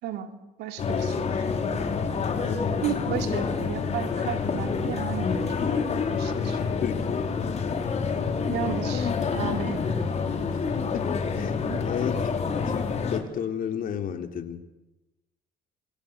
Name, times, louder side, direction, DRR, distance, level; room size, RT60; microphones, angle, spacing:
voice 1, 0.0-1.8 2.8-6.6 8.5-10.1 11.6-11.8, right 10 dB, 80° right, 6 dB, 3.6 m, -34 dB
sound 1, 0.8-13.2, left 5 dB, 40° left, 4.9 m, -27 dB
voice 2, 2.4-2.8 6.8-7.3 10.9-14.6, left 8 dB, 55° left, 6 dB, 3.6 m, -33 dB
28.5 x 22.5 x 8.3 m, 1.0 s
cardioid pair, 110°, 17 cm